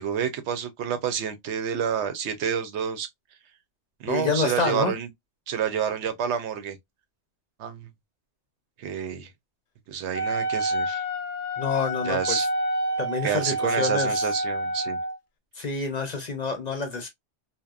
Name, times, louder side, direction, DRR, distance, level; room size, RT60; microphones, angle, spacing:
voice 1, 0.0-3.1 4.0-5.1 5.5-6.8 7.6-7.9 8.8-9.3 9.9-11.0 12.1-12.5 13.2-15.0, right 8 dB, 90° right, 0.9 m, -29 dB
voice 2, 4.1-4.9 11.6-12.4 13.0-14.3 15.6-17.1, left 4 dB, 45° left, 0.6 m, -28 dB
Wind instrument woodwind instrument, 10.1-15.2, right 1 dB, 85° left, 0.9 m, -28 dB
2.8 x 2.1 x 2.3 m
omnidirectional pair, 1.1 m